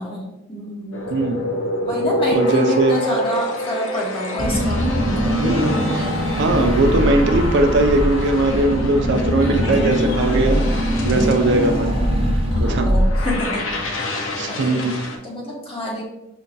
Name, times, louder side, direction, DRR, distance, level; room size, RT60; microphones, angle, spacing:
voice 1, 0.0-1.0 1.8-4.9 10.2-10.9 12.6-13.8 14.4-15.0 15.2-16.1, left 1 dB, 30° left, -3 dB, 1.0 m, -27 dB
sound 1, 0.9-15.2, left 1 dB, 70° left, 0.6 m, -28 dB
voice 2, 1.1-1.5 2.3-3.0 5.4-10.7 11.0-12.0 12.5-12.9 14.4-15.1, right 2 dB, 60° right, 5 dB, 0.4 m, -20 dB
Car / Engine, 4.4-13.6, equal, 30° right, 0.8 m, -21 dB
5.5 x 2.2 x 2.6 m, 0.89 s
head